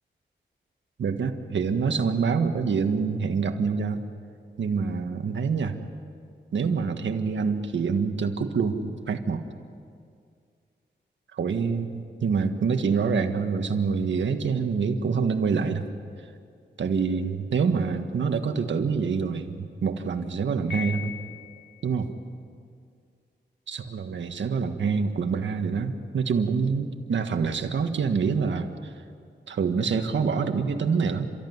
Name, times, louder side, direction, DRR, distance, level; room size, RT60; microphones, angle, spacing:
voice 1, 1.0-4.0 4.6-5.8 6.5-9.4 11.3-15.8 16.8-21.2 21.8-22.1 23.7-28.9 29.5-31.3, right 5 dB, 80° right, 6 dB, 1.6 m, -26 dB
Piano, 20.7-21.8, left 8 dB, 85° left, 2.8 m, -37 dB
30.0 x 14.5 x 9.5 m, 2.2 s
wide cardioid pair, 90°, 19 cm